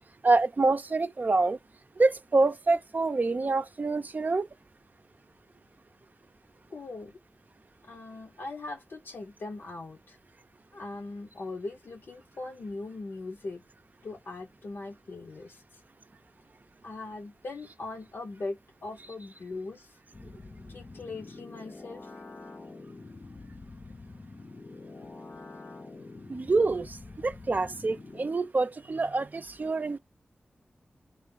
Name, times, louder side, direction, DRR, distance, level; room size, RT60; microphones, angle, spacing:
voice 1, 0.2-1.6 2.0-4.5 26.3-27.0 27.2-30.0, right 3 dB, 50° right, 0.5 m, -26 dB
voice 2, 6.7-7.2 7.8-10.2 10.7-13.6 14.0-15.8 16.8-20.0 20.7-22.1 23.9-24.0 25.0-25.1 26.1-26.3, left 3 dB, 80° left, 0.7 m, -40 dB
sound 1, 20.1-28.3, left 3 dB, 45° left, 0.6 m, -46 dB
3.2 x 2.5 x 3.7 m
cardioid pair, 50°, 4 cm